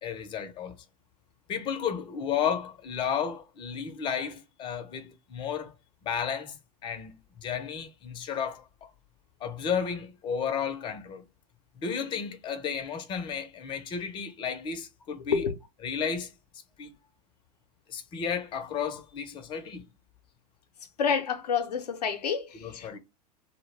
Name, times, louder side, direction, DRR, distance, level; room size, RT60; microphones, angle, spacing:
voice 1, 0.0-0.8 1.5-5.7 6.0-8.9 9.4-11.3 11.8-15.4 15.8-16.3 16.8-17.0 17.9-19.9 22.6-23.0, left 7 dB, 25° left, 0.5 m, -33 dB
voice 2, 21.0-23.0, left 6 dB, 80° left, 0.6 m, -29 dB
2.2 x 2.1 x 3.2 m
hypercardioid pair, 100°, 20 cm